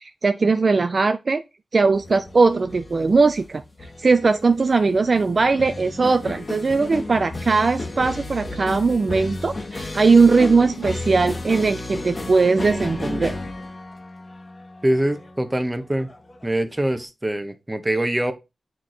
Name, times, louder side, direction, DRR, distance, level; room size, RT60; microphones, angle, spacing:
voice 1, 0.0-1.4 1.7-3.6 4.0-13.4, right 4 dB, 45° right, 0.5 m, -19 dB
sound 1, 1.9-17.0, left 2 dB, 30° left, 1.3 m, -34 dB
voice 2, 14.8-16.1 16.4-18.3, right 1 dB, 15° right, 1.0 m, -23 dB
8.3 x 4.6 x 4.0 m
wide cardioid pair, 130°, 0 cm